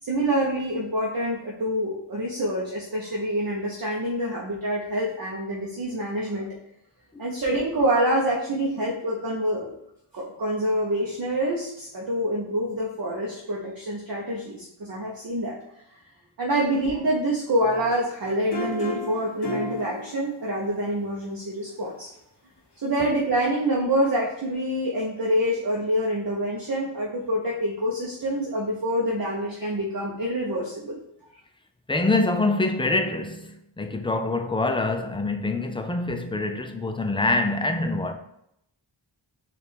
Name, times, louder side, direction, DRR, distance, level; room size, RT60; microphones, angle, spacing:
voice 1, 0.0-6.5 7.2-9.7 10.1-15.6 16.4-22.1 22.8-31.0, right 1 dB, 50° right, 0.7 m, -26 dB
sound 1, 17.6-20.5 22.1-22.2, left 2 dB, 60° left, 0.9 m, -33 dB
voice 2, 31.9-38.1, left 2 dB, 15° left, 0.3 m, -25 dB
4.3 x 2.5 x 3.5 m
wide cardioid pair, 60°, 47 cm